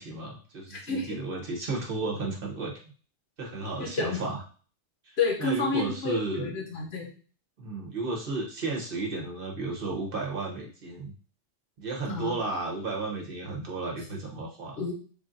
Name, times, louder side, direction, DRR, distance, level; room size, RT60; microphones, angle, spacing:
voice 1, 0.0-2.7 3.4-4.4 5.0-6.5 7.6-11.1 11.8-14.8, right 3 dB, 50° right, -1 dB, 1.0 m, -33 dB
voice 2, 0.7-1.2 3.8-4.2 5.2-7.1 12.1-12.4 14.8-14.9, left 4 dB, 60° left, 0 dB, 1.2 m, -30 dB
3.4 x 2.5 x 3.8 m, 0.39 s
omnidirectional pair, 1.2 m